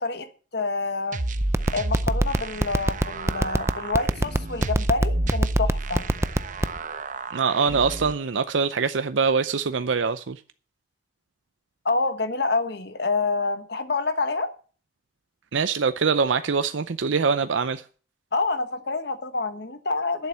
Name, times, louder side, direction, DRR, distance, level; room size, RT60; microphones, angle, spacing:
voice 1, 0.5-1.2 1.7-6.0 11.8-14.5 18.3-20.3, left 3 dB, 60° left, 1.4 m, -27 dB
sound 1, 1.1-8.1, right 1 dB, 45° right, 0.9 m, -30 dB
sound 2, 1.4-6.8, right 1 dB, 15° right, 0.5 m, -20 dB
voice 2, 7.3-10.4 15.5-17.8, right 5 dB, 85° right, 0.6 m, -23 dB
11.5 x 7.1 x 7.4 m
head